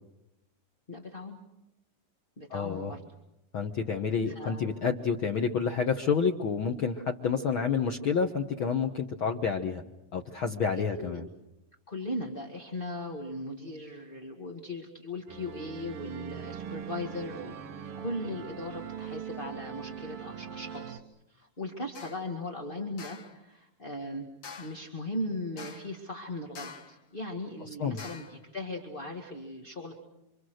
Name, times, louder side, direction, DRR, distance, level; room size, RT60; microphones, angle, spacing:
voice 1, 0.9-1.4 2.4-3.0 4.2-4.7 10.7-11.2 11.9-17.6 18.0-21.0 21.3-24.3 24.6-29.9, left 1 dB, 20° left, 1 dB, 1.4 m, -38 dB
voice 2, 2.5-2.9 3.5-9.8 10.1-11.3 27.8-28.0, left 6 dB, 90° left, 4 dB, 1.1 m, -29 dB
sound 1, 15.3-21.0, right 7 dB, 60° right, 1.5 m, -41 dB
sound 2, 21.9-22.3 23.0-23.4 24.4-24.9 25.6-26.0 26.5-27.0 28.0-28.4, left 5 dB, 45° left, 1.7 m, -46 dB
27.5 x 26.5 x 6.4 m, 0.89 s
omnidirectional pair, 4.0 m